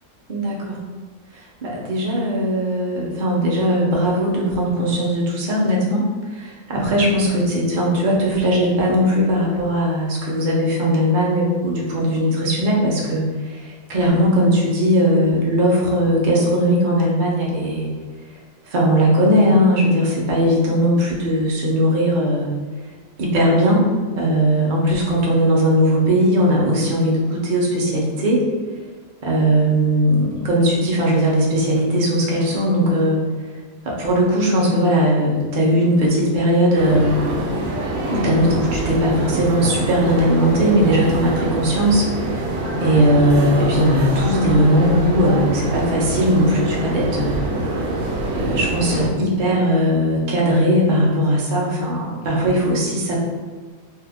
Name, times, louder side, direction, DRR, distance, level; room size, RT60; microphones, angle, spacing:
voice 1, 0.3-0.8 1.3-17.9 18.7-22.5 23.2-23.9 24.2-28.4 29.2-33.2 33.8-37.1 38.1-42.1 42.8-47.4 48.3-53.2, equal, 45° right, -3 dB, 0.6 m, -18 dB
sound 1, 36.7-49.1, right 1 dB, 85° right, 1.1 m, -25 dB
2.7 x 2.4 x 3.5 m, 1.5 s
omnidirectional pair, 1.5 m